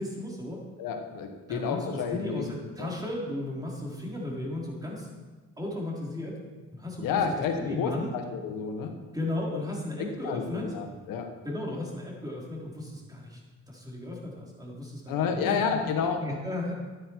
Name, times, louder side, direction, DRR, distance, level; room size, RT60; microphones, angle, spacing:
voice 1, 0.0-0.6 1.5-5.1 5.6-6.4 6.7-7.2 7.6-8.1 9.1-10.7 11.4-13.4 13.7-15.9 16.2-16.7, left 1 dB, 10° right, -3 dB, 4.1 m, -35 dB
voice 2, 0.8-2.4 2.8-2.9 7.0-8.9 9.5-9.6 10.0-11.3 15.1-16.2, left 6 dB, 90° left, 4 dB, 1.6 m, -30 dB
12.5 x 9.9 x 4.7 m, 1.3 s
cardioid pair, 80°, 33 cm